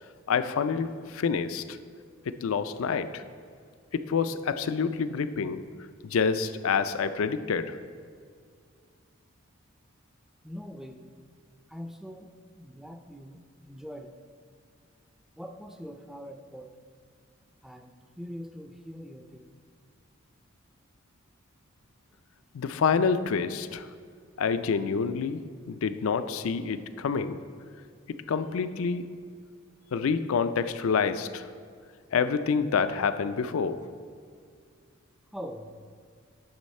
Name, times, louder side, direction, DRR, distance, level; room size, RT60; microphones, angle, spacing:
voice 1, 0.3-1.8 2.3-3.2 3.9-5.6 6.0-7.8 22.5-23.9 24.4-27.4 28.1-29.1 29.9-31.5 32.1-33.9, left 5 dB, 75° left, 12 dB, 0.4 m, -27 dB
voice 2, 10.4-11.1 11.7-12.3 12.6-14.2 15.4-16.7 17.6-19.5 35.3-35.8, equal, ahead, 6 dB, 0.3 m, -42 dB
9.6 x 6.3 x 4.2 m, 2.1 s
head